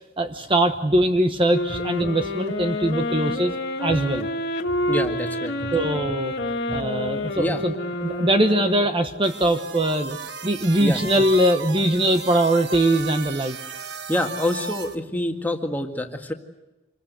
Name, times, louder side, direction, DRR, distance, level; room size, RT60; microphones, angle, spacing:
voice 1, 0.2-3.5 3.8-4.3 5.7-6.3 6.7-7.7 8.0-10.2 10.4-13.6, right 1 dB, 25° right, 7 dB, 1.1 m, -21 dB
sound 1, 1.5-9.2, left 1 dB, 60° left, 2.0 m, -28 dB
voice 2, 4.9-5.7 6.1-6.2 6.4-6.8 7.4-7.6 10.8-11.0 14.1-16.3, left 1 dB, 10° left, 4 dB, 1.9 m, -27 dB
sound 2, 9.2-15.0, right 5 dB, 60° right, 1.3 m, -35 dB
26.5 x 21.0 x 8.2 m, 1.1 s
head